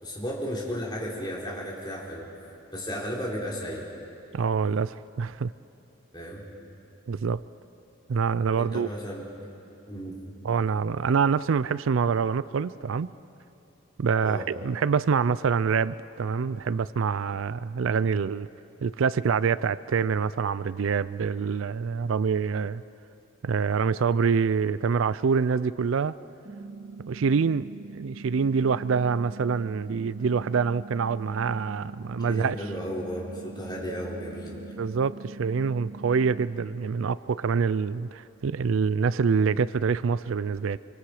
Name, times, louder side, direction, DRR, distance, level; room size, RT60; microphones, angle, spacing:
voice 1, 0.0-2.3 2.7-3.9 6.1-6.5 8.6-9.2 9.9-10.2 14.2-14.5 32.3-34.6, equal, 20° left, -4 dB, 3.5 m, -34 dB
voice 2, 4.3-5.5 7.1-7.4 8.1-8.9 10.4-13.1 14.0-18.5 18.8-22.8 23.4-26.2 27.1-32.6 34.8-40.8, right 5 dB, 80° right, 17 dB, 0.4 m, -26 dB
sound 1, 26.5-36.5, right 2 dB, 55° right, 1.9 m, -43 dB
26.5 x 25.0 x 4.9 m, 2.9 s
head